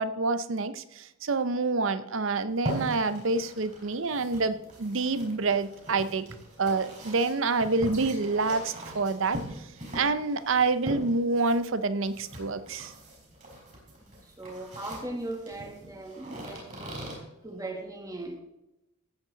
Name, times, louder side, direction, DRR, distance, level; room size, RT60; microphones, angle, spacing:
voice 1, 0.0-6.3 6.6-9.4 9.9-12.9, right 3 dB, 65° right, 0.7 m, -27 dB
sound 1, 2.5-17.2, equal, 35° right, 4.7 m, -41 dB
voice 2, 14.1-17.0 17.4-18.4, right 2 dB, 15° right, 1.5 m, -39 dB
15.0 x 8.3 x 4.0 m
head